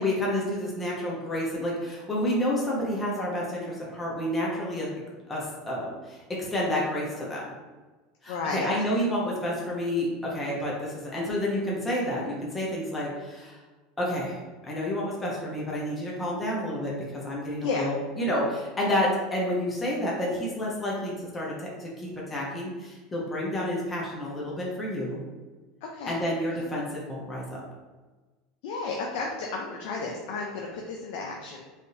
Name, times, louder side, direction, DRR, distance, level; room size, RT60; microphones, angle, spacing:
voice 1, 0.0-4.9 5.3-7.4 8.2-13.5 14.0-14.4 14.6-25.2 26.1-27.4, left 1 dB, 15° left, -4 dB, 0.9 m, -29 dB
voice 2, 8.3-8.7 17.6-17.9 25.8-26.2 26.5-26.7 28.6-31.7, left 4 dB, 70° left, 0 dB, 0.4 m, -33 dB
3.3 x 2.6 x 2.7 m, 1.3 s
supercardioid pair, 110°, 0 cm